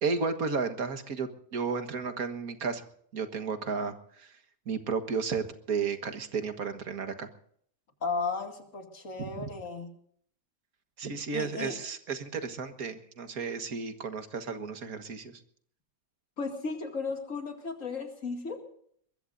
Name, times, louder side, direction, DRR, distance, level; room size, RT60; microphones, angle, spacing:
voice 1, 0.0-2.8 3.1-4.3 4.7-7.3 9.4-9.5 11.0-15.4, right 5 dB, 80° right, 8 dB, 2.0 m, -33 dB
voice 2, 8.0-9.9 11.3-11.8 16.4-18.6, left 4 dB, 65° left, 4 dB, 2.7 m, -35 dB
22.5 x 21.5 x 2.6 m, 0.63 s
omnidirectional pair, 1.5 m